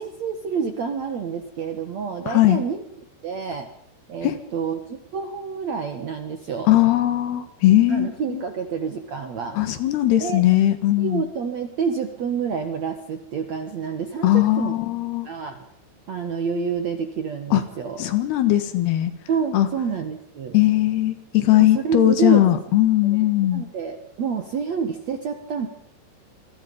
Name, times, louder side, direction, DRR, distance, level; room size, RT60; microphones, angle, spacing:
voice 1, 0.0-2.8 3.2-3.7 4.1-6.7 7.9-9.6 10.2-10.4 11.0-14.7 15.2-15.7 16.1-18.0 19.3-20.6 21.5-22.4 23.0-23.2 23.5-25.7, right 6 dB, 70° right, 6 dB, 1.6 m, -28 dB
voice 2, 2.3-2.6 4.2-4.3 6.7-8.4 9.5-11.2 14.2-15.3 17.5-17.6 18.0-19.1 19.5-19.7 20.5-23.6, left 14 dB, 65° left, 9 dB, 3.3 m, -19 dB
27.0 x 23.0 x 5.4 m, 0.68 s
omnidirectional pair, 5.6 m